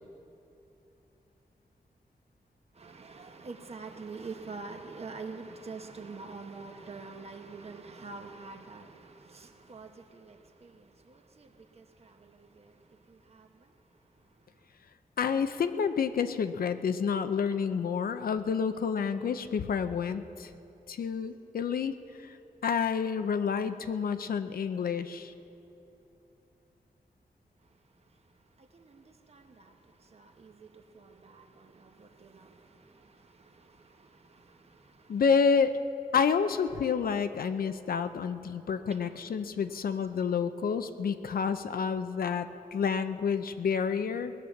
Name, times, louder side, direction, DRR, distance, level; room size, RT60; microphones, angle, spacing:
voice 1, 2.8-10.8 11.1-11.5 11.8-12.7 13.3-13.5 28.7-29.0 29.3-29.7 30.1-32.5 34.0-34.1 38.9-39.0, right 4 dB, 45° right, 5 dB, 1.0 m, -45 dB
voice 2, 15.2-20.5 20.9-22.4 22.6-25.3 35.1-35.8 36.1-44.3, left 6 dB, 80° left, 10 dB, 0.6 m, -29 dB
19.5 x 8.8 x 7.1 m, 2.9 s
wide cardioid pair, 165°, 15 cm